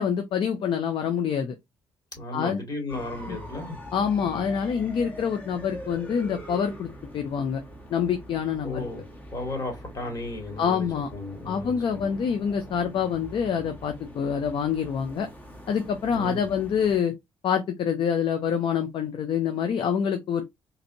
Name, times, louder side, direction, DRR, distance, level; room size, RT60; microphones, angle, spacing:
voice 1, 0.0-1.5 2.3-2.6 3.3-3.4 3.9-7.6 7.9-8.9 10.6-11.1 11.4-15.3 15.7-17.1 17.4-20.4, left 7 dB, 60° left, 0.6 m, -26 dB
voice 2, 2.2-3.8 4.2-4.5 8.6-9.0 9.3-12.1 16.1-16.4, left 2 dB, 40° left, 2.5 m, -35 dB
sound 1, 2.9-17.0, equal, 20° left, 1.4 m, -43 dB
4.1 x 2.6 x 2.7 m
cardioid pair, 75°, 10 cm